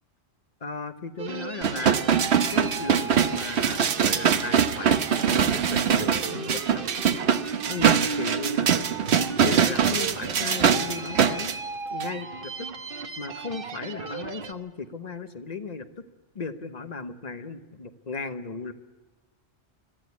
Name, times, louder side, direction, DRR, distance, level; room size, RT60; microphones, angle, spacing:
voice 1, 0.6-2.1 2.5-6.9 7.7-8.7 9.4-11.5 11.9-12.7 13.2-15.9 16.3-18.7, left 4 dB, 40° left, 9 dB, 1.1 m, -36 dB
sound 1, 1.2-14.5, right 4 dB, 55° right, 1.2 m, -36 dB
sound 2, 1.6-11.5 12.0-12.1, right 7 dB, 75° right, 1.1 m, -23 dB
22.0 x 14.0 x 9.5 m, 1.2 s
omnidirectional pair, 1.1 m